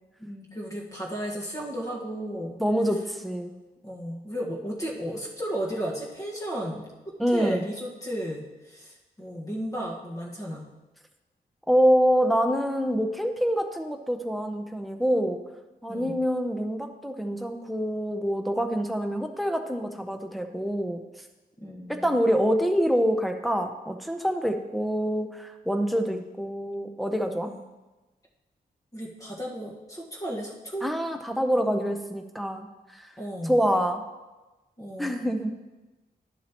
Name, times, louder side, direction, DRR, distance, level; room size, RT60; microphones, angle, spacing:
voice 1, 0.2-2.6 3.8-10.7 15.9-16.2 21.6-22.1 25.9-26.2 27.4-27.6 28.9-30.8 33.2-33.6 34.8-35.3, equal, 20° left, -3 dB, 1.4 m, -34 dB
voice 2, 2.6-3.6 7.2-7.7 11.7-15.4 15.8-21.0 21.9-27.5 30.8-33.1 33.4-34.0 35.0-35.5, equal, ahead, 5 dB, 0.6 m, -26 dB
11.5 x 7.2 x 3.0 m, 1.1 s
wide cardioid pair, 170°, 17 cm